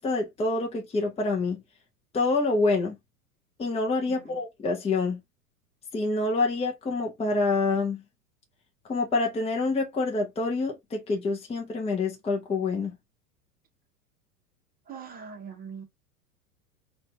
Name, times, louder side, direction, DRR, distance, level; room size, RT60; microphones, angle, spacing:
voice 1, 0.0-1.6 2.1-3.0 3.6-5.2 5.9-8.0 8.9-12.9, left 3 dB, 15° left, 1.1 m, -27 dB
voice 2, 4.1-4.4 14.9-15.9, right 6 dB, 20° right, 1.5 m, -42 dB
4.2 x 2.9 x 3.6 m
figure-of-eight pair, 90°, 46 cm